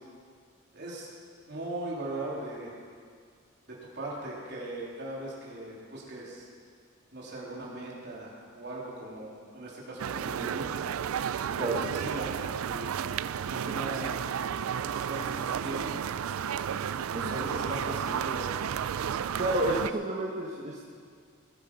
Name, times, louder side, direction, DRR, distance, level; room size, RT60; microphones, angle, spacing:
voice 1, 0.7-1.1 1.5-2.7 3.7-6.5 7.1-10.7 11.5-12.9 13.4-14.2 14.8-16.0 17.2-18.4, right 1 dB, 55° right, -4 dB, 3.4 m, -39 dB
sound 1, 10.0-19.9, right 8 dB, 85° right, 0.4 m, -32 dB
voice 2, 19.4-20.9, right 1 dB, 35° right, -3 dB, 1.2 m, -30 dB
20.0 x 9.2 x 5.5 m, 2.1 s
head